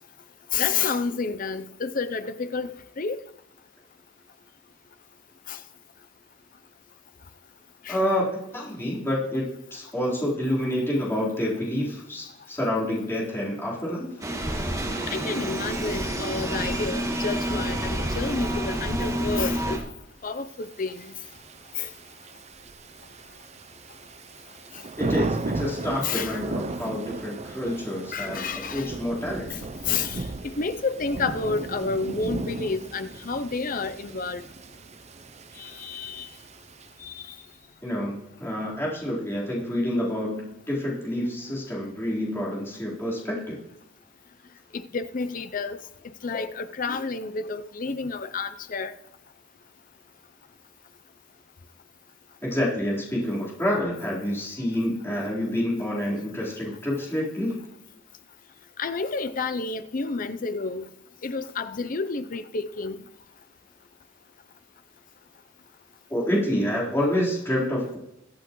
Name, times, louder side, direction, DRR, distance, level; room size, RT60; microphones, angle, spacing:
voice 1, 0.5-3.2 5.5-5.6 7.8-8.0 15.1-19.8 20.2-21.1 21.8-21.9 26.0-26.4 28.1-28.9 29.9-34.4 35.6-36.3 37.0-37.2 44.7-45.8 46.2-48.9 58.8-60.9 61.2-63.0, left 4 dB, 45° left, 0.6 m, -30 dB
voice 2, 7.9-14.1 25.0-28.4 28.7-29.7 37.8-43.6 52.4-57.6 66.1-68.0, left 1 dB, 15° left, 4.0 m, -28 dB
sound 1, 14.2-19.8, right 1 dB, 15° right, 2.1 m, -28 dB
Thunder / Rain, 20.7-37.3, right 2 dB, 35° right, 0.6 m, -36 dB
22.5 x 8.2 x 3.1 m
head